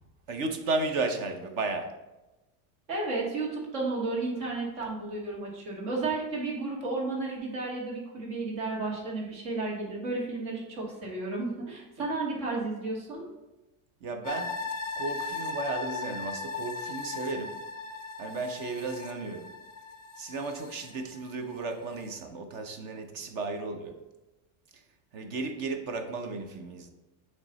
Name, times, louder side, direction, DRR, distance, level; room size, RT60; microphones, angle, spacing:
voice 1, 0.3-1.9 14.0-14.6 15.0-17.6 18.2-19.5 20.2-24.0 24.7-24.8 25.1-26.9, right 3 dB, 45° right, 7 dB, 0.7 m, -34 dB
voice 2, 2.9-13.2, right 3 dB, 60° right, -2 dB, 2.4 m, -33 dB
sound 1, 14.2-21.5 21.9-22.0, left 4 dB, 20° left, 0.6 m, -38 dB
9.0 x 3.3 x 4.0 m, 1.0 s
supercardioid pair, 140°, 47 cm